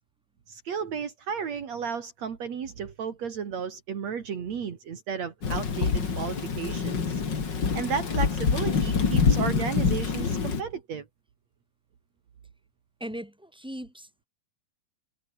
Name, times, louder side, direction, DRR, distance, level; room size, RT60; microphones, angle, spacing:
voice 1, 0.5-7.2 7.7-11.1, right 6 dB, 65° right, 3.5 m, -33 dB
Thunder / Rain, 5.4-10.6, left 5 dB, 40° left, 2.9 m, -26 dB
voice 2, 13.0-14.3, equal, ahead, 7.2 m, -39 dB
omnidirectional pair, 3.3 m